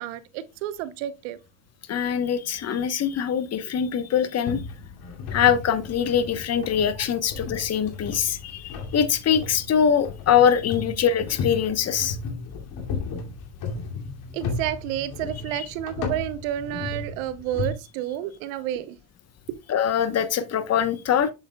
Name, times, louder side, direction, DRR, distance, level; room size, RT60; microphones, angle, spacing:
voice 1, 0.0-1.4 14.3-19.0, right 12 dB, 85° right, 0.8 m, -30 dB
voice 2, 1.9-4.6 5.3-12.2 19.7-21.3, left 8 dB, 40° left, 1.0 m, -23 dB
sound 1, 4.5-17.7, left 4 dB, 65° left, 2.5 m, -34 dB
7.5 x 7.2 x 2.2 m
supercardioid pair, 90°, 39 cm